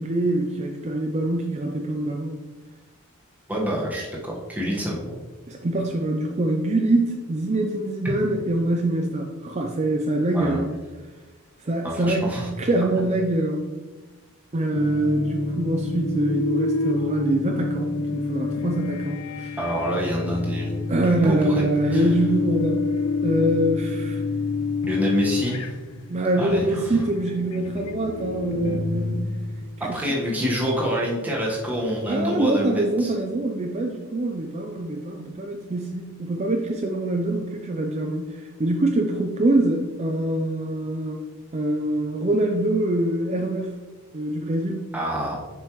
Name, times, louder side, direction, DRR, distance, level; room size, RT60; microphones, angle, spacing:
voice 1, 0.0-2.4 5.5-10.7 11.6-13.6 14.5-19.6 20.9-22.8 23.2-24.2 26.1-29.4 29.9-30.0 32.1-41.2 41.5-43.7 44.1-44.9, right 1 dB, 30° right, 2 dB, 0.4 m, -24 dB
voice 2, 3.5-5.1 10.3-10.6 11.8-12.5 12.9-13.0 19.6-20.7 21.1-22.1 24.9-25.7 26.4-27.0 29.8-33.1 44.9-45.4, equal, 5° right, -4 dB, 1.3 m, -27 dB
sound 1, 14.7-29.9, left 3 dB, 85° left, 0.5 m, -28 dB
7.4 x 5.3 x 3.1 m, 1.3 s
head